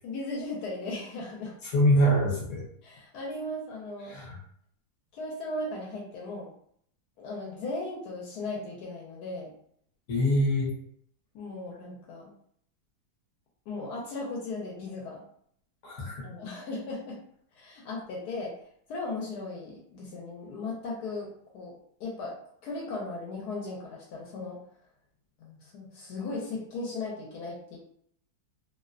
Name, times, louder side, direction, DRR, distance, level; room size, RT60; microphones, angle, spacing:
voice 1, 0.0-1.6 2.8-4.2 5.1-6.5 7.2-9.5 11.3-12.3 13.7-15.2 16.2-17.2 17.5-18.6 18.9-21.7 22.0-22.4 22.6-24.6 25.4-27.8, left 2 dB, 80° left, -2 dB, 1.1 m, -37 dB
voice 2, 1.6-2.7 4.1-4.4 10.1-10.8 15.8-16.2, equal, 60° left, -3 dB, 0.9 m, -24 dB
2.7 x 2.1 x 2.4 m, 0.65 s
omnidirectional pair, 1.7 m